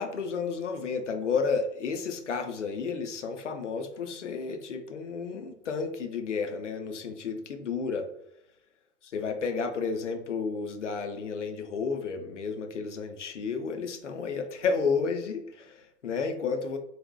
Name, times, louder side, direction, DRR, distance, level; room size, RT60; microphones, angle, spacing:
voice 1, 0.0-8.1 9.0-16.8, left 5 dB, 80° left, 6 dB, 0.5 m, -32 dB
4.0 x 2.1 x 2.2 m, 0.78 s
figure-of-eight pair, 90°, 36 cm